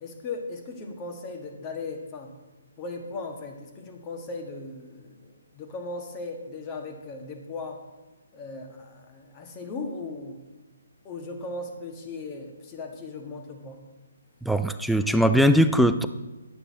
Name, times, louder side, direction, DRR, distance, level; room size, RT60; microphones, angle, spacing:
voice 1, 0.0-2.3 2.8-7.8 8.3-10.4 11.0-13.8, left 3 dB, 25° left, 3 dB, 1.4 m, -37 dB
voice 2, 14.4-16.1, equal, ahead, 9 dB, 0.4 m, -20 dB
10.5 x 8.8 x 4.1 m, 1.2 s
figure-of-eight pair, 135°, 0 cm